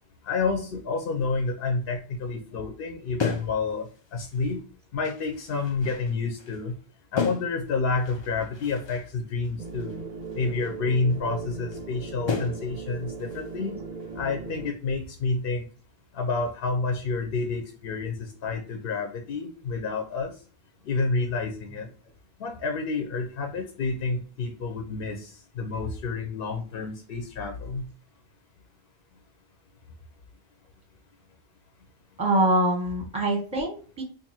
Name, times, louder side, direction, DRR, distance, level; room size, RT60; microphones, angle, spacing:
voice 1, 0.2-4.6 4.9-6.7 7.1-10.0 10.4-13.8 14.2-15.7 16.1-20.3 20.9-21.9 22.4-27.9, left 4 dB, 65° left, 3 dB, 0.8 m, -29 dB
sound 1, 3.2-4.6 5.0-6.8 7.2-9.1 9.4-10.7 11.1-11.2 11.7-11.8 12.3-12.8 13.2-13.6 14.0-14.5, left 5 dB, 50° left, 0.3 m, -35 dB
sound 2, 9.6-14.7, right 4 dB, 55° right, 0.5 m, -38 dB
voice 2, 32.2-34.0, right 1 dB, 5° right, 2 dB, 0.7 m, -24 dB
2.6 x 2.5 x 4.1 m, 0.38 s
omnidirectional pair, 1.1 m